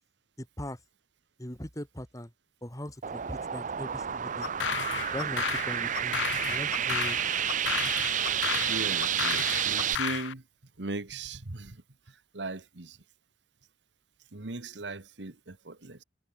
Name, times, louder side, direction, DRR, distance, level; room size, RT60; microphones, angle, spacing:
voice 1, 0.4-0.8 1.4-2.3 2.6-4.5 5.1-7.2, left 1 dB, 20° left, 3.1 m, -40 dB
sound 1, 3.0-10.0, right 9 dB, 45° right, 0.6 m, -30 dB
sound 2, 4.4-10.3, left 9 dB, 90° left, 0.4 m, -34 dB
voice 2, 8.2-10.5 10.8-13.0 14.3-16.0, right 2 dB, 90° right, 1.6 m, -39 dB
head